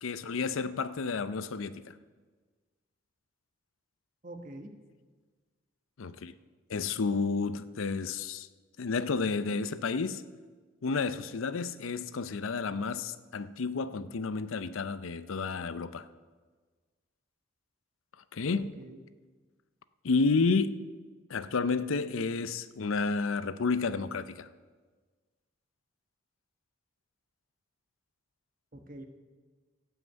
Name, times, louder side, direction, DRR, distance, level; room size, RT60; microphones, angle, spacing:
voice 1, 0.0-1.9 6.0-6.3 6.7-8.5 8.8-10.2 10.8-16.0 18.3-18.7 20.0-20.8 21.3-24.5, left 4 dB, 80° left, 0.5 m, -31 dB
voice 2, 4.2-4.8 18.5-19.0 28.7-29.1, right 1 dB, 40° right, 1.1 m, -45 dB
16.0 x 5.8 x 7.9 m
head